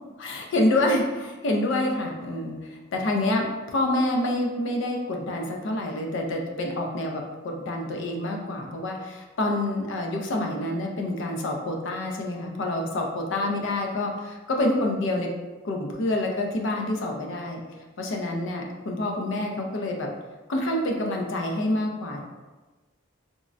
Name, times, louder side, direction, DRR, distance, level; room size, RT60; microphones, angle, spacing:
voice 1, 0.2-15.3 15.6-17.6 18.0-20.1 20.5-22.2, left 1 dB, 65° left, 1 dB, 0.5 m, -27 dB
3.6 x 2.0 x 2.5 m, 1.2 s
head